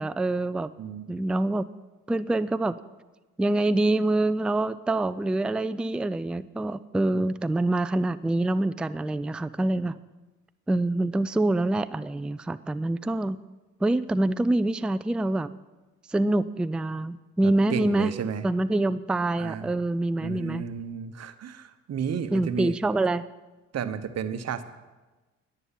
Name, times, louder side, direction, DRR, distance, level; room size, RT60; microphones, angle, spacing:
voice 1, 0.0-0.7 1.1-1.7 2.1-2.7 3.4-10.0 10.7-13.4 13.8-15.5 16.1-18.1 18.4-20.6 22.3-23.2, right 2 dB, 5° right, 13 dB, 0.3 m, -25 dB
voice 2, 0.8-1.1 7.1-7.2 17.4-18.5 19.4-19.8 20.2-22.8 23.7-24.6, right 7 dB, 55° right, 10 dB, 1.0 m, -33 dB
10.5 x 10.0 x 7.3 m, 1.2 s
cardioid pair, 90°, 30 cm